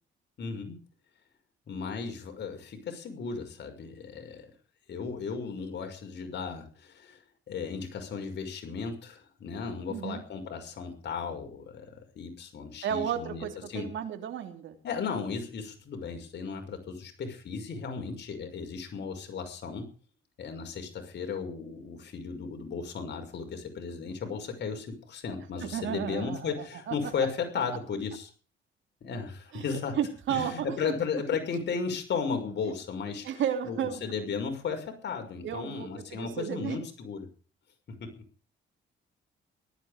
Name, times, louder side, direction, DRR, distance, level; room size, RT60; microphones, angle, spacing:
voice 1, 0.4-0.8 1.7-4.5 4.9-7.2 7.5-13.9 14.8-19.9 20.4-28.3 29.0-30.0 30.3-37.3 37.9-38.2, left 5 dB, 60° left, 4 dB, 6.0 m, -35 dB
voice 2, 9.9-10.2 12.8-14.8 25.6-26.9 29.5-30.6 33.2-34.0 35.4-36.8, right 9 dB, 70° right, 5 dB, 3.3 m, -33 dB
18.5 x 12.5 x 5.1 m, 0.39 s
cardioid pair, 90°, 20 cm